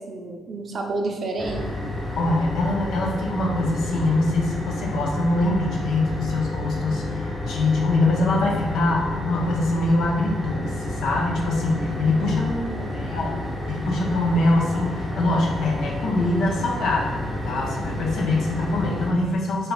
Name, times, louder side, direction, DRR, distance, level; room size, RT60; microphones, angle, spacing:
voice 1, 0.0-1.8 12.1-12.9, right 2 dB, 50° right, 1 dB, 0.7 m, -30 dB
sound 1, 1.4-19.1, left 1 dB, 5° left, 0.8 m, -30 dB
voice 2, 2.2-12.4 12.9-19.7, left 2 dB, 75° left, -1 dB, 0.6 m, -23 dB
3.3 x 2.9 x 3.8 m, 1.3 s
cardioid pair, 90°, 0 cm